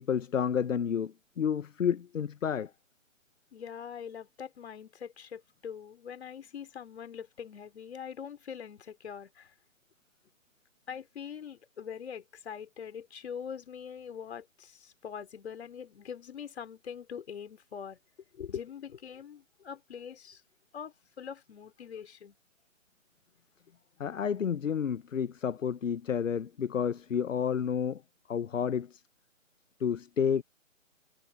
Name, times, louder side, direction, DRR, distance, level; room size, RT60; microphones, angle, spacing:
voice 1, 0.0-2.7 24.0-28.0 28.3-29.0 29.8-30.4, left 7 dB, 70° left, 0.9 m, -30 dB
voice 2, 3.5-9.5 10.9-18.0 18.3-20.4 20.7-22.4, left 7 dB, 55° left, 4.4 m, -43 dB
figure-of-eight pair, 145°, 40 cm